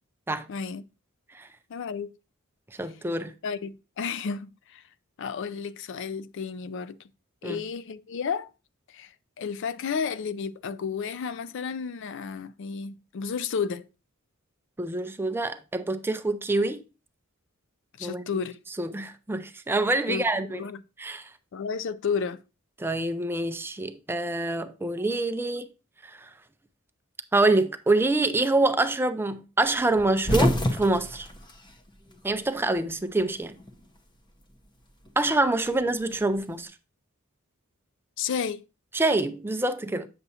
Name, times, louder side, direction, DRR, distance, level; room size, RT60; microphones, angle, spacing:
voice 1, 0.5-0.8 1.7-2.1 3.4-4.8 5.2-7.0 7.4-8.5 8.9-13.8 18.0-18.6 20.1-20.8 21.5-22.4 38.2-38.6, left 6 dB, 60° left, 0.4 m, -32 dB
voice 2, 2.8-3.3 7.4-7.6 14.8-16.8 18.0-18.2 18.8-20.6 21.0-21.3 22.8-25.7 26.1-26.3 27.3-31.3 32.2-33.6 35.2-36.7 38.9-40.1, right 2 dB, 10° right, 0.4 m, -26 dB
sound 1, 29.9-32.5 32.8-33.8 35.0-36.5, equal, 20° left, 0.8 m, -28 dB
8.4 x 6.8 x 2.8 m
head